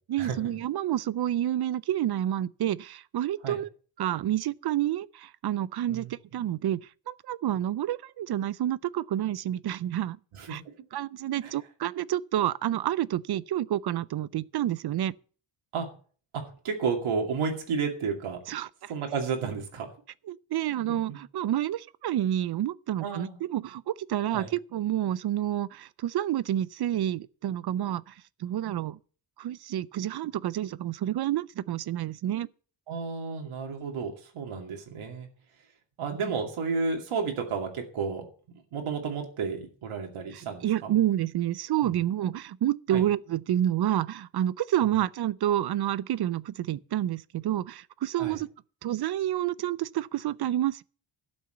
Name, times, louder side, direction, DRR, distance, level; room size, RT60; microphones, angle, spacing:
voice 1, 0.1-3.7 4.0-6.8 7.1-10.2 10.5-10.6 10.9-15.1 18.5-18.9 20.3-28.1 28.4-29.0 29.4-32.5 40.3-48.5 48.8-50.8, right 12 dB, 55° right, 0.5 m, -29 dB
voice 2, 16.3-18.4 18.9-19.9 20.9-21.2 23.0-23.4 24.3-24.5 32.9-35.3 36.0-38.3 38.7-40.9 41.8-41.9 42.9-43.0 48.2-48.4, right 5 dB, 80° right, 2.6 m, -32 dB
12.5 x 6.3 x 7.9 m
wide cardioid pair, 180°, 49 cm